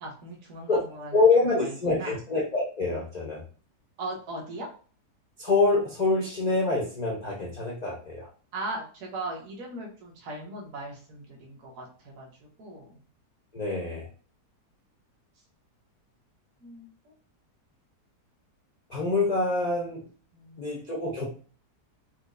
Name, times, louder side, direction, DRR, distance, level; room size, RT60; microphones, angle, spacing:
voice 1, 0.0-2.2 4.0-4.7 8.5-12.3 12.6-13.0 16.6-17.1 20.3-20.8, right 2 dB, 55° right, -2 dB, 1.3 m, -39 dB
voice 2, 1.1-3.4 5.4-8.3 13.5-14.1 18.9-20.0 20.6-21.2, left 3 dB, 60° left, -4 dB, 0.4 m, -25 dB
4.3 x 2.2 x 2.5 m, 0.40 s
omnidirectional pair, 1.8 m